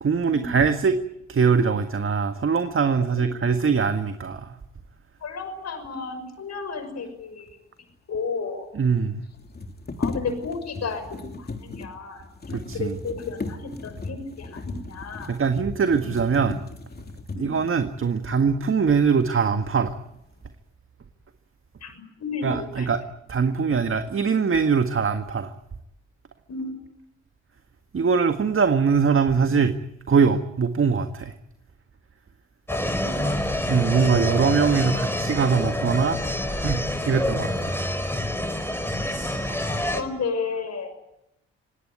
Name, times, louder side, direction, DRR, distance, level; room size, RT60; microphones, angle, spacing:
voice 1, 0.0-1.0 1.3-4.6 8.7-9.2 12.5-13.0 15.3-16.6 17.4-20.0 22.4-23.0 23.3-25.5 27.9-29.8 30.1-31.4 33.7-36.2 36.6-37.8, right 5 dB, 40° right, 8 dB, 1.8 m, -22 dB
voice 2, 5.2-7.5 8.1-8.7 10.0-12.2 12.7-15.4 17.3-17.5 21.8-22.9 26.5-26.8 32.7-33.4 39.5-40.9, left 4 dB, 55° left, 8 dB, 6.4 m, -33 dB
sound 1, 7.9-8.2 9.3-17.7 18.4-18.5 19.0-19.6 19.9-20.5, left 3 dB, 30° left, 3.3 m, -36 dB
sound 2, 32.7-40.0, left 1 dB, 5° left, 4.5 m, -27 dB
27.0 x 18.5 x 9.6 m, 0.87 s
hypercardioid pair, 45°, 32 cm